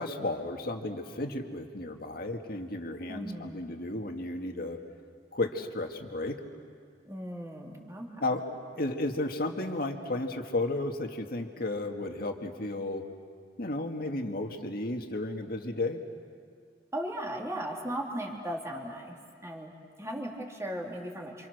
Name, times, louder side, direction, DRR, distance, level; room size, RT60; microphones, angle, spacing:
voice 1, 0.0-4.8 5.3-6.4 8.2-8.4 8.8-13.1 13.6-16.0, left 2 dB, 55° left, 4 dB, 2.0 m, -33 dB
voice 2, 3.1-3.6 7.0-8.2 16.9-21.5, right 1 dB, 15° right, -1 dB, 3.4 m, -37 dB
29.0 x 27.0 x 6.6 m, 2.2 s
head